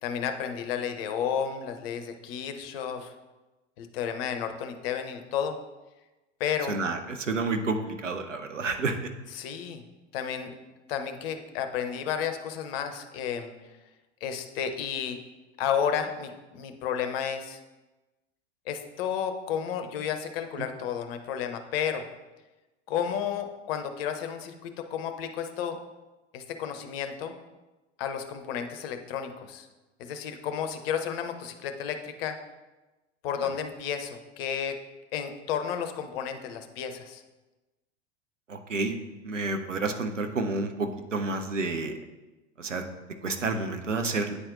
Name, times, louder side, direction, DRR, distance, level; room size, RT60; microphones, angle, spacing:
voice 1, 0.0-3.1 3.8-5.6 6.4-6.8 9.3-9.8 10.1-10.5 10.9-13.5 14.2-15.2 15.6-17.6 18.7-22.0 22.9-25.8 26.3-27.3 28.0-29.7 30.0-32.4 33.2-34.8 35.1-37.2, left 8 dB, 55° left, 7 dB, 0.8 m, -32 dB
voice 2, 6.7-9.1 20.6-20.7 38.5-39.0 39.2-41.9 42.6-42.8 43.2-44.4, right 3 dB, 90° right, 5 dB, 0.7 m, -30 dB
9.6 x 4.3 x 2.5 m, 1.1 s
figure-of-eight pair, 85°, 36 cm